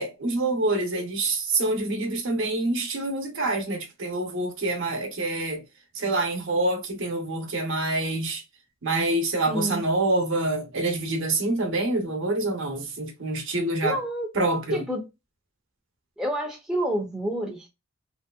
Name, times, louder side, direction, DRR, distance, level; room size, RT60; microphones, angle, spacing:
voice 1, 0.0-5.6 5.9-8.4 8.8-14.0 14.3-14.8, right 2 dB, 55° right, 0.9 m, -26 dB
voice 2, 9.5-9.8 13.8-14.3 14.7-15.1 16.2-17.7, right 1 dB, 5° right, 0.6 m, -28 dB
3.1 x 2.7 x 2.3 m
head